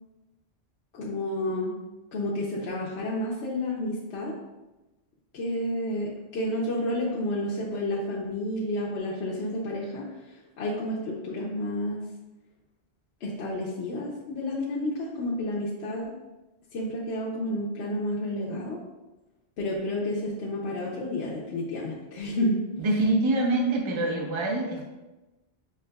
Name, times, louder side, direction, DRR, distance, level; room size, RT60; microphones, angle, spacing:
voice 1, 0.9-1.7 2.1-4.3 5.3-10.0 10.6-12.0 13.2-16.1 16.7-18.8 19.6-22.6, left 1 dB, 70° left, -5 dB, 0.9 m, -30 dB
voice 2, 22.8-24.9, right 2 dB, 35° right, 0 dB, 0.5 m, -25 dB
5.6 x 3.0 x 2.3 m, 1.1 s
omnidirectional pair, 1.2 m